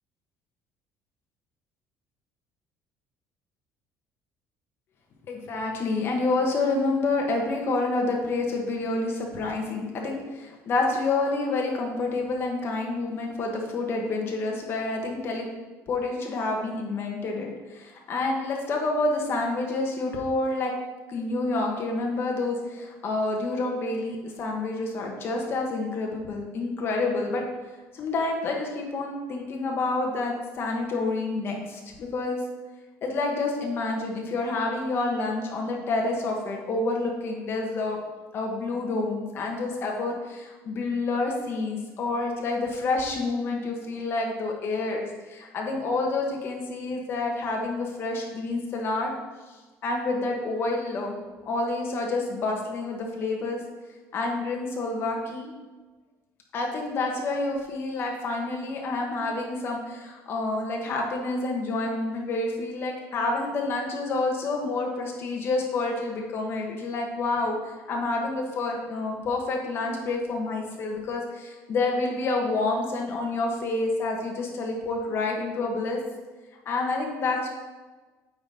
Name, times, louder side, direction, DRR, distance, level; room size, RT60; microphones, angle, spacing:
voice 1, 5.3-15.5 15.9-20.7 21.1-27.4 27.9-32.4 33.0-38.0 38.3-49.1 49.8-51.2 51.4-53.6 54.1-55.5 56.5-67.6 67.9-76.0 76.6-77.5, left 3 dB, 40° left, 0 dB, 1.3 m, -28 dB
8.7 x 3.9 x 4.3 m, 1.3 s
cardioid pair, 160°, 6 cm